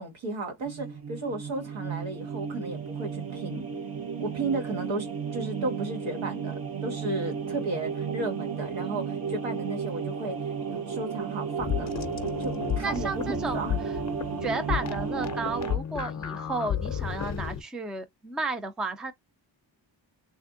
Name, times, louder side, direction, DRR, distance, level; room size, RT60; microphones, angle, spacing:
voice 1, 0.0-3.7 4.2-11.9 12.4-13.8, right 2 dB, 90° right, 1.6 m, -34 dB
sound 1, 0.6-15.8, right 6 dB, 50° right, 0.9 m, -33 dB
sound 2, 11.6-17.6, left 9 dB, 40° left, 0.6 m, -33 dB
voice 2, 12.8-13.7 14.4-19.1, right 3 dB, ahead, 0.3 m, -33 dB
3.4 x 2.5 x 2.5 m
wide cardioid pair, 135°, 45 cm